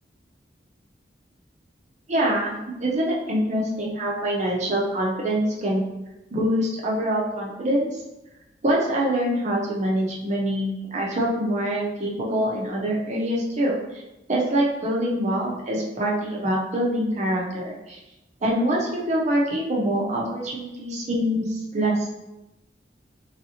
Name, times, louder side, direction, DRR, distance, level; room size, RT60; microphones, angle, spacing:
voice 1, 2.1-5.8 6.3-8.0 8.6-14.0 14.3-18.0 18.4-22.1, right 1 dB, 40° right, -3 dB, 0.7 m, -25 dB
3.2 x 2.6 x 2.9 m, 0.97 s
head